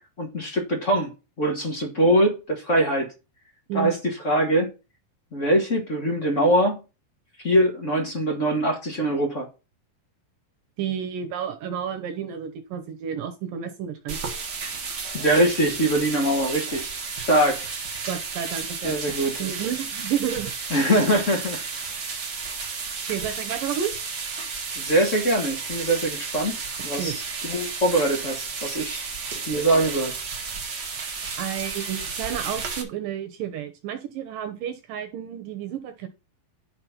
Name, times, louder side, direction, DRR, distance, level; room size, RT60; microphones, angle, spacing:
voice 1, 0.2-1.1 1.4-3.1 3.7-3.9 4.2-4.7 5.3-6.8 7.4-9.5 15.1-17.7 18.8-19.3 20.7-21.6 24.8-29.1 29.5-30.1 30.4-30.5, right 1 dB, 35° left, 1.1 m, -23 dB
voice 2, 10.8-14.2 18.1-20.5 23.1-23.9 27.0-27.2 31.4-36.1, right 9 dB, 75° right, 2.5 m, -31 dB
sound 1, 14.1-32.8, right 5 dB, 50° right, 1.3 m, -33 dB
11.5 x 4.4 x 5.8 m
omnidirectional pair, 4.2 m